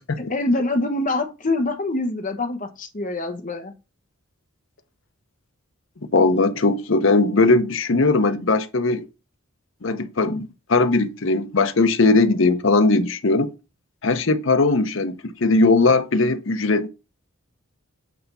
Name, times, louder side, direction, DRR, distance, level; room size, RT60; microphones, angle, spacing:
voice 1, 0.2-3.7, left 2 dB, 40° left, 1.0 m, -25 dB
voice 2, 6.1-9.0 9.8-13.5 14.0-16.9, left 3 dB, 65° left, 0.8 m, -19 dB
8.5 x 3.4 x 5.4 m
head